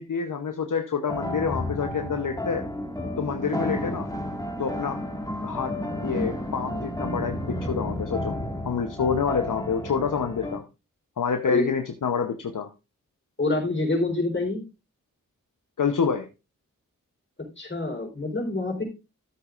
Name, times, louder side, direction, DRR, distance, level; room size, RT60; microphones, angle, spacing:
voice 1, 0.0-2.6 3.2-4.1 4.6-5.0 5.4-5.7 6.0-8.4 8.6-10.6 11.2-12.7 15.8-16.3, left 6 dB, 65° left, 5 dB, 0.9 m, -27 dB
sound 1, 1.1-10.6, left 1 dB, 10° left, 1.9 m, -32 dB
voice 2, 13.4-14.6 17.6-18.8, left 2 dB, 35° left, 2 dB, 4.0 m, -26 dB
12.5 x 8.0 x 2.5 m, 0.27 s
cardioid pair, 45°, 33 cm